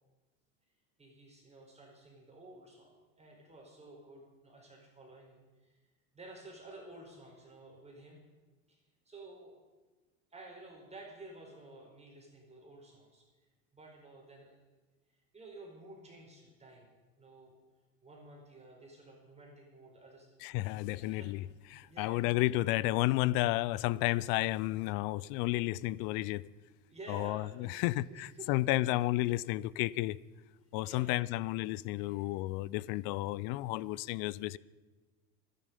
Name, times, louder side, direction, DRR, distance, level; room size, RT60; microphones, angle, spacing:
voice 1, 1.0-5.7 6.1-8.2 8.7-8.8 9.0-9.6 10.3-13.2 13.7-14.6 15.3-16.9 17.2-17.6 18.0-20.4 21.0-21.3 21.8-22.5 26.9-28.5 30.8-31.1 31.9-32.2, right 2 dB, 15° right, 4.8 m, -52 dB
voice 2, 20.4-21.4 21.7-26.4 27.1-30.2 30.7-34.6, left 18 dB, 55° left, 0.7 m, -32 dB
26.0 x 10.5 x 5.3 m
hypercardioid pair, 95°, 43 cm